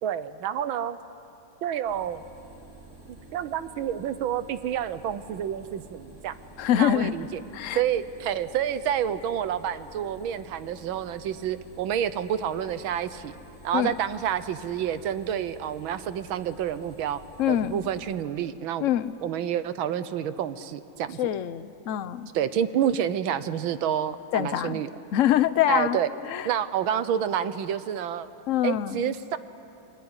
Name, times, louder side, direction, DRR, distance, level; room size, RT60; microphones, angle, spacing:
voice 1, 0.0-1.0 1.6-2.2 3.3-6.4 6.8-7.4 7.7-13.4 13.6-17.2 17.5-18.9 19.2-21.2 22.3-24.9 25.7-26.1 26.4-28.3 28.6-29.4, right 9 dB, 75° right, 13 dB, 1.6 m, -28 dB
sound 1, 1.9-18.2, right 1 dB, 5° right, 5.7 m, -50 dB
voice 2, 6.6-7.1 7.5-7.8 13.7-13.9 17.4-17.8 18.8-19.1 21.2-22.3 24.3-24.8 25.1-26.0 26.3-26.5 28.5-29.0, left 11 dB, 65° left, 14 dB, 0.8 m, -24 dB
28.0 x 21.0 x 9.7 m, 2.8 s
omnidirectional pair, 2.3 m